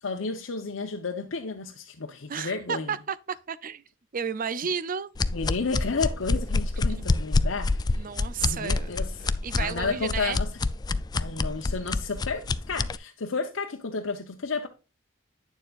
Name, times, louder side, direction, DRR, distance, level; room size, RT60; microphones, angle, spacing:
voice 1, 0.0-2.9 5.3-8.1 8.4-9.3 9.6-10.5 11.1-14.7, left 4 dB, 75° left, 0.8 m, -32 dB
voice 2, 2.3-3.8 4.1-5.1 6.9-7.2 8.0-10.4, right 7 dB, 45° right, 0.5 m, -33 dB
sound 1, 5.2-13.0, left 3 dB, 20° left, 0.3 m, -27 dB
9.1 x 6.9 x 2.4 m
head